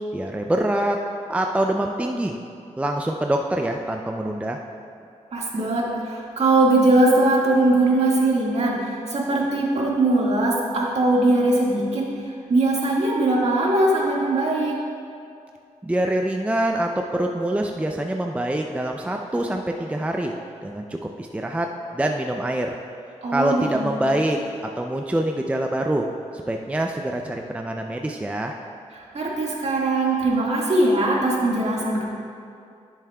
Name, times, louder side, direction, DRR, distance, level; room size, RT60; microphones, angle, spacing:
voice 1, 0.1-1.0 1.3-2.4 2.8-4.6 15.8-20.3 20.6-22.7 23.3-24.4 24.8-26.1 26.5-28.5, right 1 dB, 10° right, 3 dB, 0.4 m, -25 dB
voice 2, 5.3-14.8 23.2-23.9 28.9-32.0, right 2 dB, 55° right, -3 dB, 1.8 m, -21 dB
13.5 x 7.2 x 2.3 m, 2.4 s
cardioid pair, 70°, 13 cm